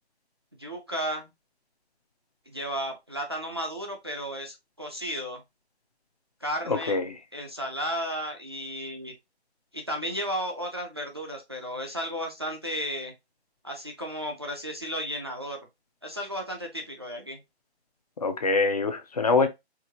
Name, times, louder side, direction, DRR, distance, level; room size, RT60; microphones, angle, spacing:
voice 1, 0.6-1.3 2.5-5.4 6.4-7.0 7.3-9.1 9.7-13.1 13.6-15.7 16.0-17.4, equal, 25° right, 0.4 m, -34 dB
voice 2, 6.7-7.0 18.2-19.5, left 3 dB, 35° left, 0.5 m, -24 dB
4.5 x 2.5 x 2.8 m
hypercardioid pair, 155°, 33 cm